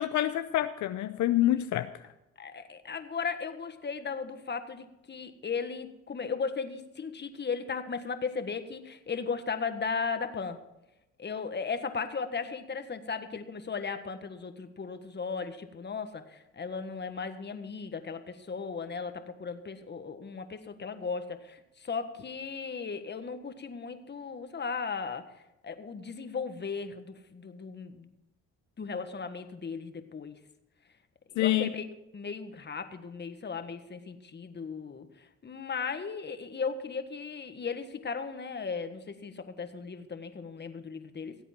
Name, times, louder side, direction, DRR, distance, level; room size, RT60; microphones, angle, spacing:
voice 1, 0.0-1.9 31.4-31.7, left 13 dB, 70° left, 10 dB, 0.6 m, -27 dB
voice 2, 2.4-10.6 11.2-25.3 25.6-28.1 28.8-30.3 31.3-31.8 32.1-41.4, left 5 dB, 35° left, 8 dB, 1.5 m, -36 dB
17.0 x 8.1 x 6.0 m, 0.94 s
supercardioid pair, 75°, 30 cm